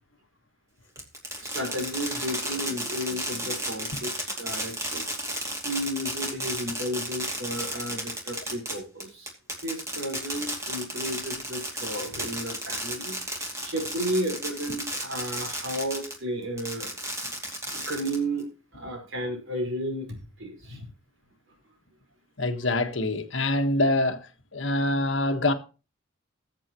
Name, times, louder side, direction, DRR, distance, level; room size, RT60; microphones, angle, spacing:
Fireworks, 1.0-16.2 16.6-18.4, right 1 dB, 15° right, 2.5 m, -33 dB
voice 1, 1.4-5.1 5.6-9.3 9.6-16.9 17.7-20.9, equal, 70° right, 4.9 m, -33 dB
voice 2, 22.4-24.3 24.5-25.5, left 2 dB, 65° left, 1.5 m, -25 dB
21.0 x 7.5 x 3.0 m
head